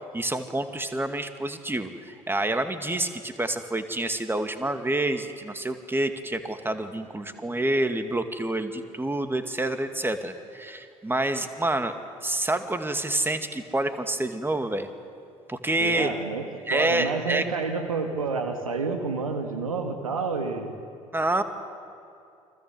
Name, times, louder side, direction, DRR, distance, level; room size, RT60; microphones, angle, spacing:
voice 1, 0.1-11.9 12.2-14.9 15.5-16.1 16.7-17.5 21.1-21.4, right 1 dB, 10° right, 8 dB, 2.4 m, -28 dB
voice 2, 7.2-7.6 15.8-20.8, right 4 dB, 85° right, 5 dB, 1.9 m, -30 dB
30.0 x 24.5 x 8.0 m, 2.5 s
figure-of-eight pair, 55°, 17 cm